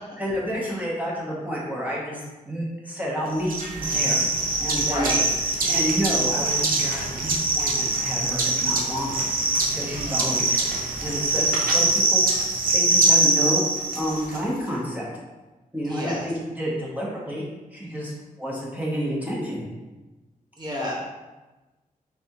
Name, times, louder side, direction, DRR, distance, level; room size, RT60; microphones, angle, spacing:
voice 1, 0.2-2.2 2.5-4.3 4.6-5.3 5.6-9.3 9.7-10.7 11.0-12.2 12.7-13.6 14.0-15.1 15.7-17.4 17.7-18.1 18.4-19.6, equal, 10° right, -5 dB, 0.7 m, -29 dB
sound 1, 3.5-14.4, right 2 dB, 80° right, 0.6 m, -23 dB
voice 2, 4.8-5.3 9.9-10.3 15.8-16.2 20.6-20.9, left 1 dB, 30° right, -6 dB, 1.1 m, -30 dB
3.4 x 3.4 x 2.8 m, 1.1 s
wide cardioid pair, 155°, 15 cm